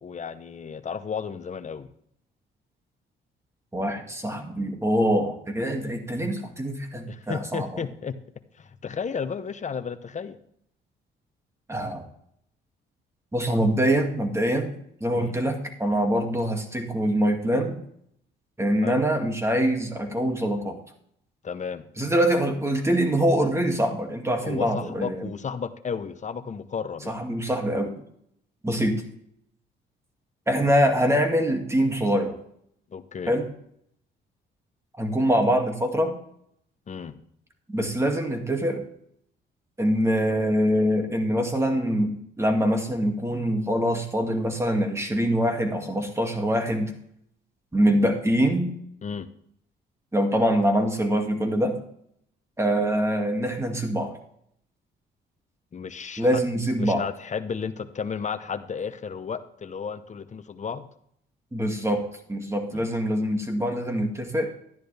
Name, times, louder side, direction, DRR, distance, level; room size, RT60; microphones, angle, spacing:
voice 1, 0.0-1.9 7.1-8.1 8.6-10.4 15.1-15.4 18.8-19.0 21.4-21.9 24.4-27.2 32.9-33.3 36.9-37.1 49.0-49.3 55.7-56.4 56.8-60.9 62.7-62.8, left 6 dB, 35° left, 11 dB, 0.9 m, -33 dB
voice 2, 3.7-7.7 11.7-12.0 13.3-14.7 15.0-17.8 18.6-20.8 22.0-25.3 27.1-27.9 28.6-29.0 30.5-32.4 33.3-33.5 35.0-36.2 37.7-38.8 39.8-46.9 47.7-48.7 50.1-51.8 52.6-54.2 56.2-57.1 61.5-64.5, equal, 15° right, 4 dB, 2.2 m, -24 dB
12.0 x 10.5 x 3.4 m, 0.70 s
cardioid pair, 90°, 20 cm